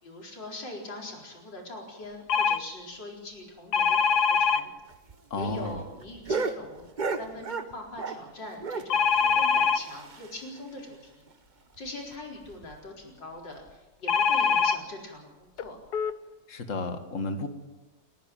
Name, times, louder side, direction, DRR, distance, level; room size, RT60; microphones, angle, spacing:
voice 1, 0.0-4.7 5.3-6.9 7.2-11.2 11.8-15.8, left 1 dB, 85° left, 0 dB, 5.1 m, -42 dB
sound 1, 2.3-2.6 3.7-4.6 8.9-9.8 14.1-14.8 15.6-15.7 15.9-16.1, left 6 dB, 65° left, 1.4 m, -23 dB
sound 2, 4.9-8.3 8.6-10.6 10.9-11.0 11.3-11.4 11.8-11.9 12.5-12.7 13.6-13.7, right 4 dB, 35° right, 0.9 m, -35 dB
voice 2, 5.3-5.8 16.5-17.5, left 2 dB, 45° left, 7 dB, 2.1 m, -32 dB
29.5 x 11.0 x 9.0 m, 1.1 s
omnidirectional pair, 1.9 m